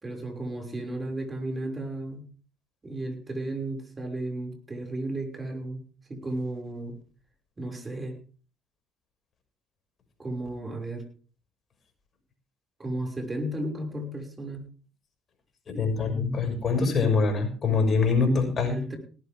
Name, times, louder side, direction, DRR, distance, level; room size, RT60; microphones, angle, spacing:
voice 1, 0.0-2.3 2.8-5.8 6.1-7.0 7.6-8.2 10.2-11.1 12.8-14.7 18.7-19.0, right 1 dB, 25° right, 4 dB, 6.0 m, -34 dB
voice 2, 15.7-18.8, left 4 dB, 45° left, 5 dB, 6.0 m, -24 dB
18.0 x 14.0 x 3.7 m, 0.38 s
hypercardioid pair, 60°, 0 cm